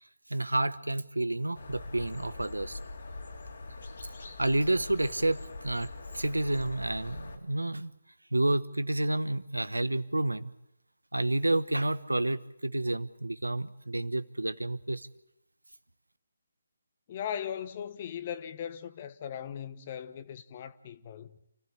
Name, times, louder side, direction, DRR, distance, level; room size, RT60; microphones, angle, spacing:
voice 1, 0.3-2.8 4.4-7.9 8.3-10.5 11.1-15.1, right 1 dB, 90° right, 1.1 m, -30 dB
sound 1, 1.5-7.4, left 3 dB, 60° left, 3.3 m, -43 dB
voice 2, 17.1-21.4, left 9 dB, 35° left, 1.2 m, -38 dB
28.5 x 15.5 x 8.7 m
figure-of-eight pair, 145°, 0 cm